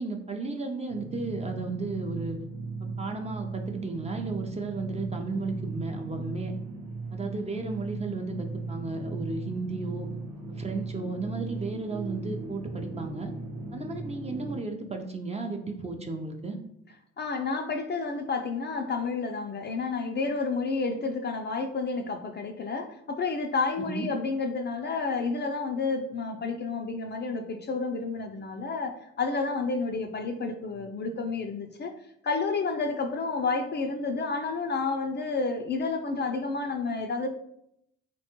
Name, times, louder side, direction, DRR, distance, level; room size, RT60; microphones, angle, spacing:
voice 1, 0.0-2.4 2.8-6.5 7.1-10.1 10.5-13.3 13.7-16.6 23.9-24.1, right 3 dB, 20° right, 4 dB, 0.5 m, -34 dB
sound 1, 0.9-14.6, right 3 dB, 65° right, 0.7 m, -37 dB
voice 2, 17.2-31.9 32.2-37.3, left 4 dB, 35° left, 5 dB, 0.4 m, -30 dB
3.4 x 2.2 x 2.9 m, 0.76 s
supercardioid pair, 60°, 30 cm